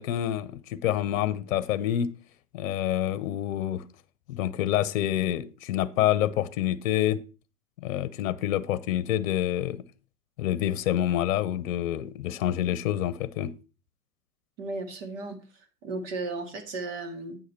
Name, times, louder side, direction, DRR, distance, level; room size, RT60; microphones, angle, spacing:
voice 1, 0.0-2.1 2.5-3.8 4.3-7.2 7.8-9.8 10.4-13.5, left 12 dB, 55° left, 0.9 m, -27 dB
voice 2, 14.6-15.4 15.8-17.4, right 3 dB, 50° right, 2.2 m, -34 dB
9.2 x 6.5 x 4.4 m
hypercardioid pair, 135°, 48 cm